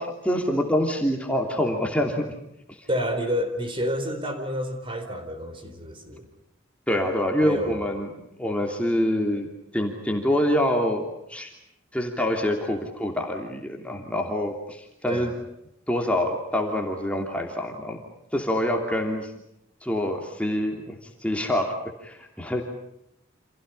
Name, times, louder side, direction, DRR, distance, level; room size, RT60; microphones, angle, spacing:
voice 1, 0.0-2.3 2.8-2.9 6.9-8.1 8.4-11.5 11.9-15.3 15.9-18.0 18.3-19.3 19.8-22.6, left 1 dB, 5° left, 1 dB, 2.9 m, -26 dB
voice 2, 2.9-6.3 7.4-7.9 15.1-15.4, equal, 25° right, 7 dB, 4.2 m, -29 dB
29.5 x 28.0 x 5.6 m, 0.79 s
head